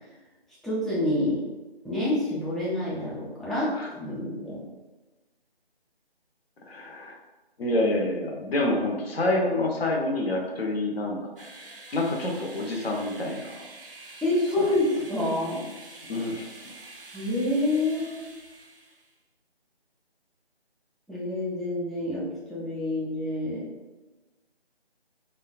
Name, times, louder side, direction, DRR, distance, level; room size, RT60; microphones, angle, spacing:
voice 1, 0.6-1.4 1.8-4.6 14.2-15.6 17.1-18.3 21.1-23.6, left 1 dB, ahead, -9 dB, 0.4 m, -27 dB
voice 2, 6.7-7.2 7.6-11.3 11.9-13.6 14.6-14.7 16.1-16.5, left 2 dB, 70° left, 0 dB, 0.6 m, -27 dB
sound 1, 11.4-19.1, right 2 dB, 60° right, 0.4 m, -46 dB
2.5 x 2.2 x 2.3 m, 1.1 s
figure-of-eight pair, 175°, 32 cm